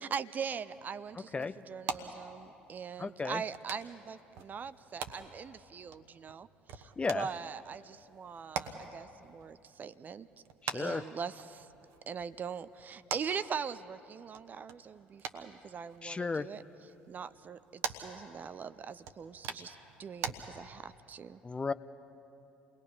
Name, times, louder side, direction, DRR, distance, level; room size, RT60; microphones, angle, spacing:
voice 1, 0.0-10.3 10.7-11.7 12.1-16.6 17.1-21.4, right 6 dB, 35° right, 15 dB, 0.5 m, -41 dB
sound 1, 0.5-20.3, right 7 dB, 60° right, 1.1 m, -45 dB
voice 2, 3.0-3.4 7.0-7.3 10.6-11.0 16.0-16.5 21.4-21.7, left 4 dB, 20° left, 14 dB, 0.5 m, -34 dB
28.5 x 20.5 x 5.5 m, 2.9 s
figure-of-eight pair, 55°, 5 cm